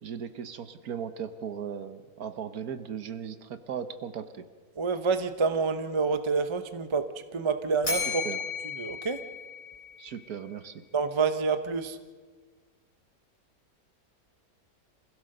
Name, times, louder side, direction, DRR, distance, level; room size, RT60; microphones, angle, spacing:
voice 1, 0.0-4.4 8.2-8.4 10.0-10.8, right 8 dB, 70° right, 10 dB, 1.4 m, -37 dB
voice 2, 4.8-7.1 7.3-8.2 8.8-9.2 10.9-12.0, right 5 dB, 25° right, 9 dB, 0.6 m, -27 dB
Bell, 7.8-10.1, left 4 dB, 35° left, 4.6 m, -34 dB
26.5 x 16.0 x 6.6 m, 1.5 s
omnidirectional pair, 1.7 m